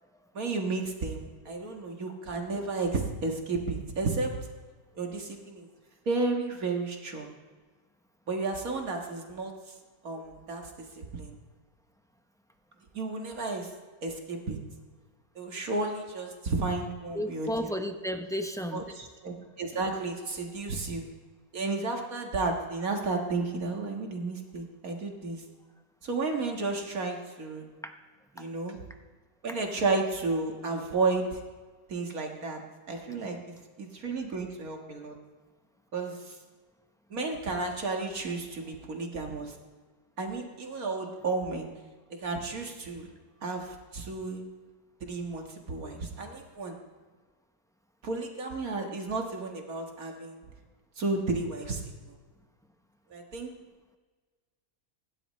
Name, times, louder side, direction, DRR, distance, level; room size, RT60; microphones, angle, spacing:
voice 1, 0.3-4.4 5.0-5.7 6.1-7.3 8.3-9.5 10.0-10.6 11.0-11.3 12.9-13.7 14.0-14.6 15.4-17.7 18.7-18.8 19.2-21.0 21.5-25.4 26.0-27.7 28.4-28.8 29.4-31.4 31.9-32.6 32.9-33.4 33.8-35.2 35.9-36.3 37.1-39.5 40.2-41.7 42.2-43.1 43.4-44.4 45.0-45.4 45.7-46.8 48.0-50.4 51.0-51.8 53.1-53.5, right 3 dB, 80° right, 2 dB, 2.2 m, -32 dB
voice 2, 17.1-18.8 19.7-19.8 27.8-27.9 28.4-28.5 29.5-29.6 33.1-33.5, equal, 5° left, 5 dB, 0.6 m, -34 dB
26.0 x 12.0 x 3.2 m, 1.4 s
omnidirectional pair, 1.5 m